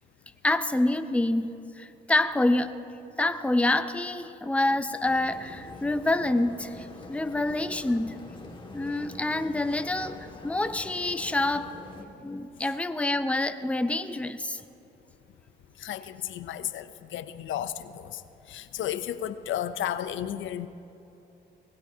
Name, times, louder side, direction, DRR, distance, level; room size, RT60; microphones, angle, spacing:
voice 1, 0.4-2.8 3.2-8.2 8.7-11.7 12.2-14.6, left 2 dB, 5° left, 10 dB, 0.6 m, -27 dB
sound 1, 5.0-12.0, left 2 dB, 25° left, 2.0 m, -45 dB
voice 2, 15.8-18.2 18.5-20.7, left 11 dB, 75° left, 12 dB, 0.6 m, -33 dB
23.5 x 19.0 x 2.8 m, 2.9 s
cardioid pair, 90°, 20 cm